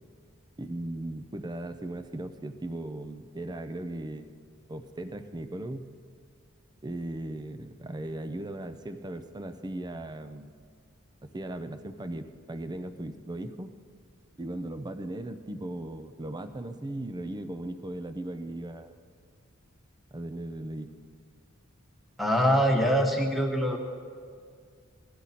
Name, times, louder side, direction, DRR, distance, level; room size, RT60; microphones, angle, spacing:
voice 1, 0.6-4.3 4.7-5.9 6.8-10.5 11.2-13.7 14.4-19.0 20.1-20.9, right 1 dB, 20° right, 10 dB, 0.5 m, -37 dB
voice 2, 22.2-23.8, equal, ahead, 2 dB, 1.2 m, -24 dB
17.0 x 12.0 x 4.2 m, 2.1 s
head